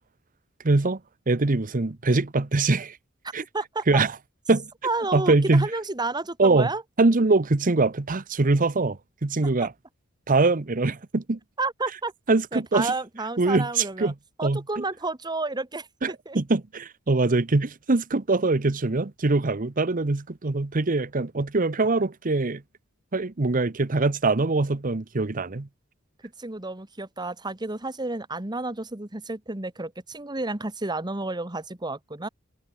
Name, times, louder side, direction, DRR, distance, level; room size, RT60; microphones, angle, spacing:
voice 1, 0.6-1.0 1.3-3.0 3.3-3.4 3.9-4.1 4.5-4.7 5.1-5.7 6.4-6.7 7.0-9.7 10.3-11.4 12.3-12.9 13.4-14.1 14.4-14.8 16.0-22.6 23.1-25.7, right 3 dB, 40° right, 0.9 m, -23 dB
voice 2, 3.5-4.0 4.8-6.8 9.4-9.5 11.6-12.1 12.5-14.1 14.4-16.4 26.2-32.3, right 3 dB, 20° right, 1.6 m, -31 dB
head